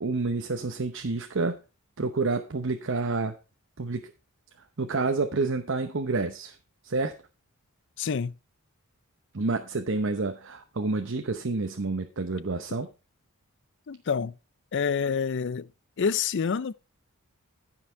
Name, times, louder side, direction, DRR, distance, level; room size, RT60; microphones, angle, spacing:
voice 1, 0.0-1.6 2.0-3.4 3.8-4.1 4.8-6.6 6.8-7.2 9.3-12.9, right 3 dB, 55° right, 0.8 m, -29 dB
voice 2, 8.0-8.3 13.9-14.3 14.7-15.7 16.0-16.7, left 6 dB, 55° left, 0.4 m, -27 dB
14.5 x 5.9 x 4.5 m
head